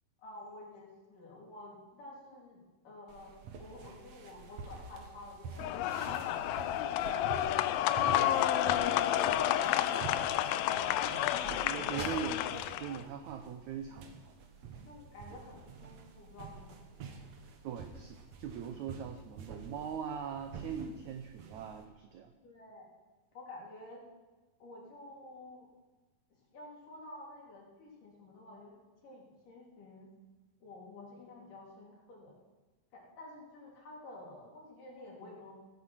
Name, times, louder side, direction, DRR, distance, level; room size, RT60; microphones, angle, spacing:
voice 1, 0.2-3.3 3.6-8.4 9.3-10.2 13.9-14.0 14.8-17.2 22.4-22.9 23.3-24.0 24.6-25.7 26.3-30.1 30.6-32.4 32.9-35.5, left 2 dB, 60° left, -3 dB, 4.5 m, -51 dB
sound 1, 3.1-21.9, right 5 dB, 60° right, 1.9 m, -48 dB
sound 2, 5.6-13.0, left 12 dB, 85° left, 2.5 m, -30 dB
voice 2, 11.1-14.3 17.6-22.3, right 7 dB, 85° right, 7 dB, 1.6 m, -41 dB
16.0 x 8.6 x 6.1 m, 1.2 s
omnidirectional pair, 4.3 m